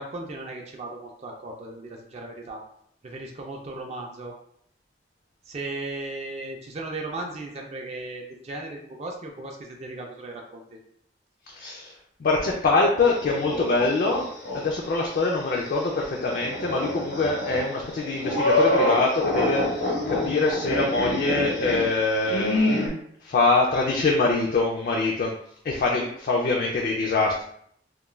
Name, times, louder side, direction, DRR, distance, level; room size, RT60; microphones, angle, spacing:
voice 1, 0.0-2.6 3.0-4.3 5.5-10.8, right 2 dB, 35° right, 1 dB, 0.3 m, -36 dB
voice 2, 11.5-11.9 12.2-14.3 14.5-22.6 23.2-25.4 25.6-27.4, left 3 dB, 55° left, -1 dB, 0.3 m, -24 dB
sound 1, 13.0-14.6 15.0-15.1 16.2-22.9, left 1 dB, 85° left, 0.9 m, -26 dB
2.3 x 2.1 x 3.1 m, 0.68 s
head